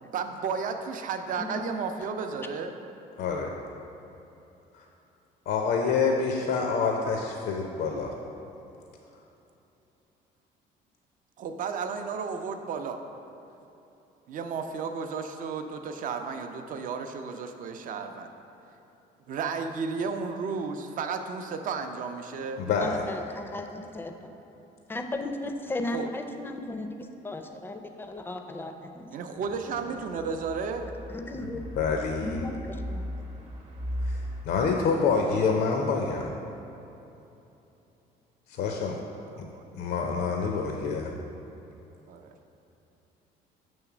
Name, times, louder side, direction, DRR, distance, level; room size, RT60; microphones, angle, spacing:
voice 1, 0.1-2.7 11.4-13.0 14.3-18.3 19.3-22.6 25.9-26.1 29.1-30.9 38.7-38.9 39.3-39.7 42.1-42.3, right 5 dB, 50° right, 6 dB, 0.5 m, -33 dB
voice 2, 1.4-1.7 22.8-24.3 24.9-29.5 29.9-30.0 31.1-31.6 32.2-33.1, left 2 dB, 15° left, 6 dB, 0.4 m, -36 dB
voice 3, 3.2-3.5 4.7-4.8 5.5-8.1 22.6-22.9 31.8-32.4 34.0-34.2 34.4-36.3 38.5-39.0 39.4-39.5 39.7-41.1, left 5 dB, 65° left, 2 dB, 0.5 m, -27 dB
sound 1, 29.4-34.4, equal, 35° right, 1.0 m, -37 dB
7.0 x 3.2 x 5.9 m, 3.0 s
cardioid pair, 110°, 17 cm